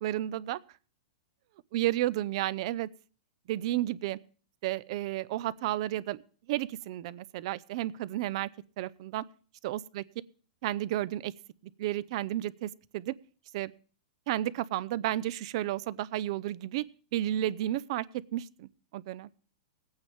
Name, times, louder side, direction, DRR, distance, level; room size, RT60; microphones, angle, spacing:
voice 1, 0.0-0.6 1.7-2.9 3.5-4.2 4.6-6.2 6.5-8.5 8.8-9.2 9.6-10.0 10.6-11.3 11.8-13.1 13.5-13.7 14.3-16.8 17.1-18.1 18.3-19.3, right 14 dB, 45° right, 20 dB, 0.5 m, -32 dB
19.5 x 8.8 x 3.6 m, 0.40 s
supercardioid pair, 160°, 4 cm